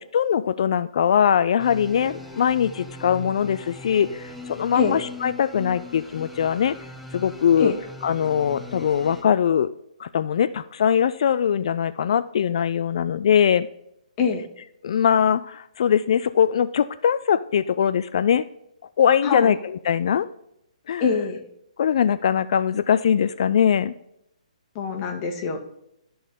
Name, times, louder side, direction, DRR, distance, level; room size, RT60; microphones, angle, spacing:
voice 1, 0.1-6.8 7.1-7.7 8.0-9.7 10.0-13.7 14.8-18.4 19.0-19.6 19.9-20.3 20.9-21.1 21.8-23.9, left 8 dB, 50° left, 13 dB, 0.3 m, -21 dB
sound 1, 1.6-9.2, left 2 dB, ahead, 0.9 m, -40 dB
voice 2, 19.2-19.6 21.0-21.4 24.7-25.6, left 5 dB, 25° left, 2 dB, 1.3 m, -24 dB
12.5 x 4.3 x 3.5 m, 0.78 s
figure-of-eight pair, 130°, 4 cm